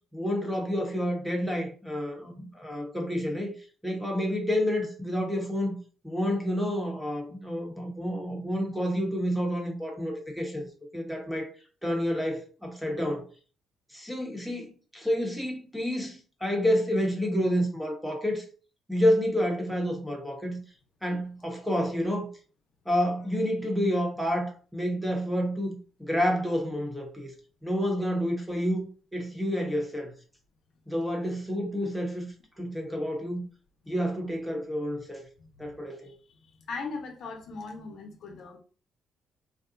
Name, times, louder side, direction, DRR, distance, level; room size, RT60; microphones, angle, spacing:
voice 1, 0.1-3.5 3.8-5.7 6.0-10.7 10.9-11.5 11.8-13.2 13.9-18.4 18.9-20.6 21.0-22.3 22.9-25.7 26.0-27.3 27.6-30.1 30.9-32.3 32.6-33.4 33.9-35.2 35.6-36.1, equal, ahead, 1.0 m, -29 dB
voice 2, 36.4-38.6, left 4 dB, 65° left, 0.7 m, -39 dB
2.6 x 2.3 x 3.8 m
cardioid pair, 90°, 0 cm